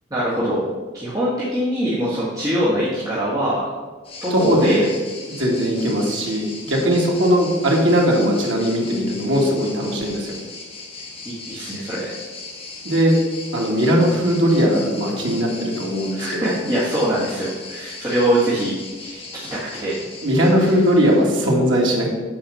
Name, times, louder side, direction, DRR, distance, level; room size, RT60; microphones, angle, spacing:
voice 1, 0.1-0.6 0.9-3.7 4.2-4.9 5.6-6.1 11.3-12.1 16.1-20.0, right 1 dB, 20° right, -10 dB, 1.8 m, -23 dB
sound 1, 4.0-21.4, left 3 dB, 30° left, 1.8 m, -38 dB
voice 2, 4.3-4.9 5.3-10.4 12.8-13.1 13.5-16.6 20.2-22.1, equal, 70° right, -2 dB, 2.1 m, -19 dB
8.6 x 4.8 x 6.4 m, 1.3 s
head